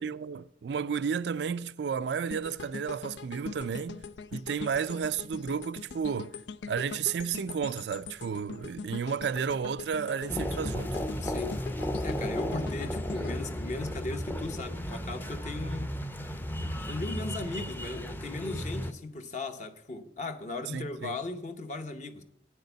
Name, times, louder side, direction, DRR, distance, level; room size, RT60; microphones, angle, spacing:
voice 1, 0.0-4.0 4.3-6.4 6.7-11.0 20.7-21.2, right 6 dB, 75° right, 0.4 m, -32 dB
sound 1, 2.3-14.5 14.9-15.1, left 5 dB, 85° left, 0.5 m, -43 dB
sound 2, 10.3-18.9, equal, 10° left, 0.6 m, -34 dB
voice 2, 11.2-11.5 12.0-15.9 16.9-22.2, left 2 dB, 40° left, 0.8 m, -37 dB
8.9 x 6.6 x 8.0 m
head